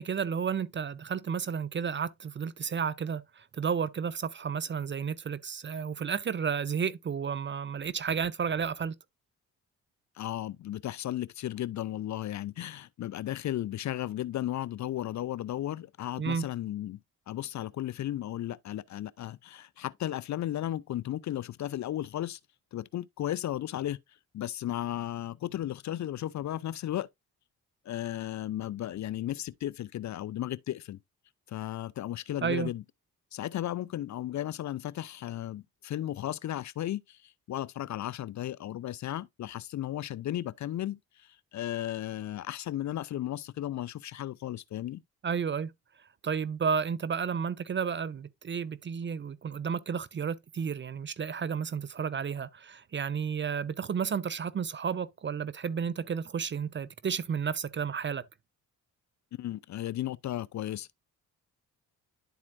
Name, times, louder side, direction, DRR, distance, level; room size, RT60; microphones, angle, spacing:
voice 1, 0.0-8.9 16.2-16.4 32.4-32.7 45.2-45.7 46.2-58.2, right 6 dB, 30° right, 0.4 m, -32 dB
voice 2, 10.2-17.0 17.3-22.4 22.7-24.0 24.3-27.1 27.9-31.0 31.5-32.8 33.3-45.0 59.4-61.0, left 13 dB, 50° left, 0.4 m, -35 dB
11.0 x 4.2 x 2.5 m
supercardioid pair, 55°, 38 cm